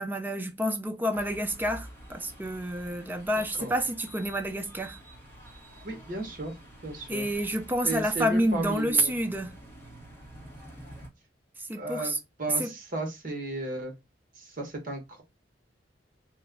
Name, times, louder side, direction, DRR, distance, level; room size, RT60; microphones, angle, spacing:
voice 1, 0.0-5.0 7.1-9.5 11.7-12.2 12.6-12.7, equal, 10° right, 0.4 m, -29 dB
sound 1, 1.1-11.1, right 1 dB, 15° left, 1.0 m, -48 dB
voice 2, 5.8-6.5 6.8-7.3 7.8-9.1 11.7-12.1 12.4-13.9 14.4-15.2, right 2 dB, 50° right, 1.1 m, -34 dB
3.1 x 2.2 x 3.5 m
head